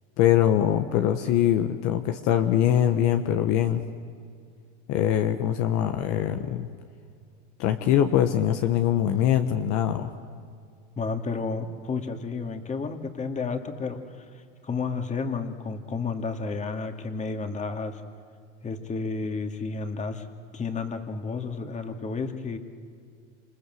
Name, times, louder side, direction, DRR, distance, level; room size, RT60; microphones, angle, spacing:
voice 1, 0.2-3.9 4.9-6.7 7.6-10.1, left 10 dB, 50° left, 7 dB, 1.5 m, -23 dB
voice 2, 11.0-14.0 14.6-18.0 18.6-20.3 20.5-22.6, left 4 dB, 20° left, 6 dB, 2.5 m, -31 dB
28.0 x 27.0 x 7.9 m, 2.2 s
supercardioid pair, 130°, 35 cm